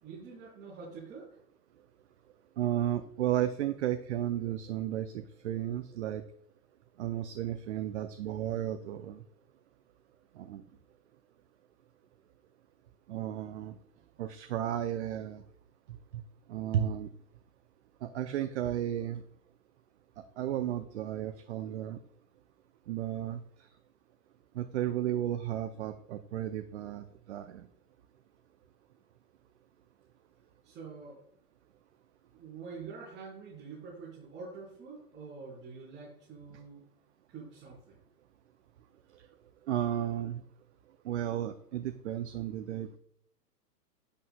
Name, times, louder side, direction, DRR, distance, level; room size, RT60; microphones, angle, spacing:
voice 1, 0.0-1.4 30.6-31.2 32.3-36.8 37.3-38.0, right 5 dB, 20° right, -8 dB, 3.8 m, -46 dB
voice 2, 2.6-6.2 7.0-9.2 10.4-10.6 13.1-13.7 14.2-15.4 16.5-17.1 18.0-19.2 20.4-22.0 22.9-23.4 24.5-27.7 39.7-40.4 41.0-43.0, right 11 dB, 45° right, 9 dB, 0.6 m, -33 dB
10.5 x 8.6 x 2.2 m, 0.70 s
figure-of-eight pair, 110°, 49 cm